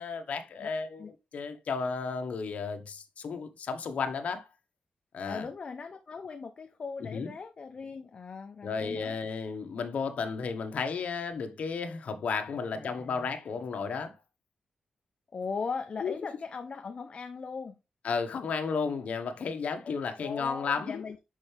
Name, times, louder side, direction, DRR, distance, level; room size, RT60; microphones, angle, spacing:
voice 1, 0.0-1.0 1.3-4.5 5.1-5.5 7.0-7.3 8.6-14.1 16.0-16.1 18.0-21.0, left 5 dB, 65° left, 1.1 m, -33 dB
voice 2, 5.2-9.1 12.7-13.3 15.3-17.7 19.8-21.2, left 5 dB, 45° left, 0.7 m, -39 dB
6.3 x 5.6 x 3.3 m
wide cardioid pair, 150°, 3 cm